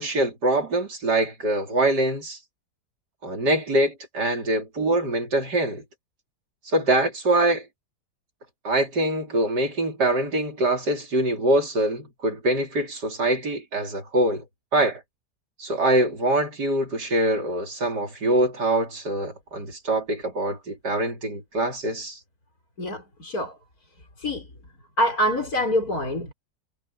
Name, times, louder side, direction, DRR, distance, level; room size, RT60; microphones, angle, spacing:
voice 1, 0.0-2.4 3.2-5.8 6.6-7.7 8.6-14.4 14.7-15.0 15.6-22.2, right 1 dB, 75° right, 4.3 m, -24 dB
voice 2, 22.8-23.6 24.2-24.5 25.0-26.3, equal, 60° left, 6.5 m, -25 dB
omnidirectional pair, 1.8 m